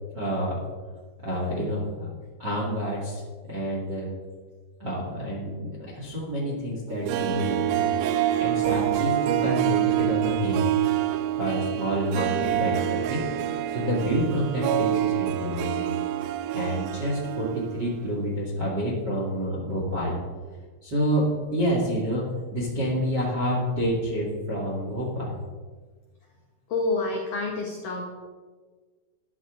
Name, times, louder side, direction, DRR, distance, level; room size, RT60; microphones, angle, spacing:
voice 1, 0.1-0.6 1.2-2.1 2.4-3.2 3.5-4.1 4.8-7.9 8.4-10.6 11.4-13.2 13.7-15.9 16.5-20.2 20.8-22.2 22.5-25.4, equal, 50° right, -3 dB, 1.2 m, -28 dB
Harp, 6.9-17.9 18.2-18.3, right 13 dB, 85° right, 3.2 m, -26 dB
voice 2, 26.7-28.0, left 3 dB, 80° left, -1 dB, 1.8 m, -28 dB
13.5 x 11.0 x 3.8 m, 1.4 s
omnidirectional pair, 5.8 m